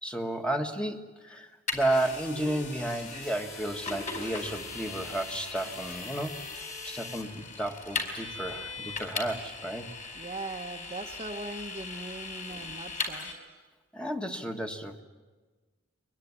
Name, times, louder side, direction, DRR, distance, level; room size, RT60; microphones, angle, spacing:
voice 1, 0.0-1.5 1.7-9.9 13.9-15.0, right 1 dB, 5° left, 4 dB, 1.5 m, -32 dB
Vehicle, 1.7-13.3, left 3 dB, 35° left, 4.8 m, -39 dB
sound 1, 1.9-7.2, left 4 dB, 50° left, 4.4 m, -46 dB
voice 2, 10.1-13.3, right 2 dB, 30° right, 4 dB, 1.0 m, -40 dB
23.5 x 21.5 x 9.7 m, 1.3 s
head